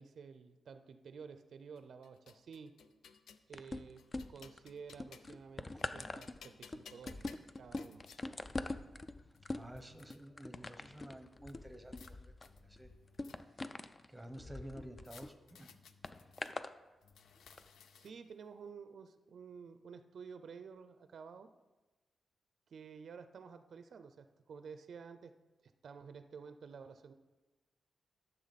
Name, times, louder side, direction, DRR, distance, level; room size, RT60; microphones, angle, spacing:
voice 1, 0.0-2.8 3.5-7.3 7.6-8.0 17.9-21.5 22.7-25.3 25.6-27.1, right 6 dB, 65° right, 10 dB, 0.5 m, -52 dB
sound 1, 1.8-3.5 4.0-5.4 5.8-8.2 9.0-9.1 9.4-10.2 11.5-12.1 12.4-13.7 15.0-16.5 17.0-18.3, left 6 dB, 90° left, 0.5 m, -59 dB
sound 2, 3.5-4.6 4.9-15.3 16.0-16.7 17.5-17.6, left 2 dB, 30° left, 0.4 m, -44 dB
voice 2, 9.5-12.3 12.6-12.9 14.1-15.8, equal, 5° right, 8 dB, 0.9 m, -51 dB
12.5 x 6.9 x 4.1 m, 1.2 s
wide cardioid pair, 120°, 0 cm